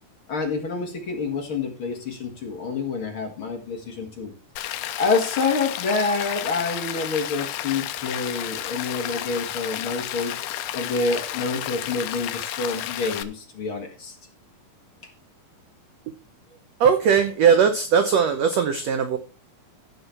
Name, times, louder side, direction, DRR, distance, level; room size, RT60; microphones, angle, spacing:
voice 1, 0.3-4.3 5.0-10.3 10.7-14.2, left 4 dB, 45° left, 2 dB, 2.2 m, -27 dB
Rain, 4.6-13.2, left 12 dB, 80° left, 1.9 m, -32 dB
voice 2, 16.8-19.2, right 7 dB, 80° right, 7 dB, 1.5 m, -19 dB
15.0 x 5.6 x 4.3 m, 0.34 s
omnidirectional pair, 4.1 m